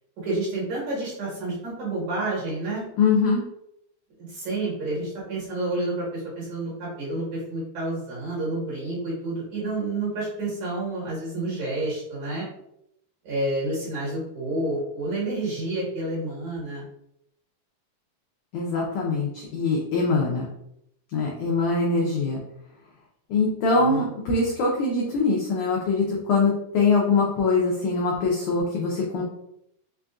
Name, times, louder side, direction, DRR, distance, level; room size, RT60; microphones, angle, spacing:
voice 1, 0.2-2.8 4.2-12.4 13.2-16.8 23.7-24.0, right 2 dB, 60° right, -6 dB, 2.4 m, -29 dB
voice 2, 3.0-3.4 18.5-20.5 21.1-22.4 23.3-29.2, left 3 dB, 80° left, -2 dB, 1.7 m, -23 dB
5.5 x 2.5 x 2.3 m, 0.78 s
omnidirectional pair, 4.2 m